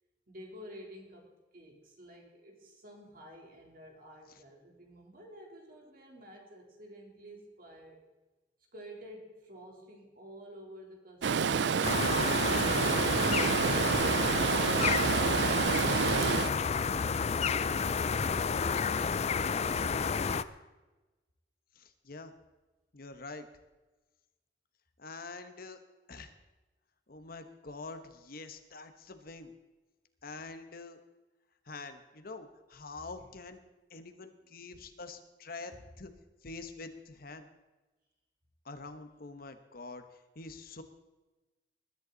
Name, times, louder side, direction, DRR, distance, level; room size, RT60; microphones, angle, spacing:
voice 1, 0.3-8.0 8.7-16.8 35.6-35.8, equal, 55° right, 0 dB, 3.5 m, -52 dB
Stream, 11.2-16.5, right 6 dB, 75° right, 0.5 m, -28 dB
sound 1, 11.8-20.4, left 5 dB, 40° left, 0.5 m, -30 dB
voice 2, 21.7-22.3 22.9-23.5 25.0-25.8 26.1-26.3 27.1-29.5 30.2-31.0 31.7-33.6 33.9-36.1 36.4-37.5 38.6-40.0 40.3-40.8, left 3 dB, 55° left, 8 dB, 1.2 m, -45 dB
20.5 x 11.0 x 4.0 m, 1.1 s
head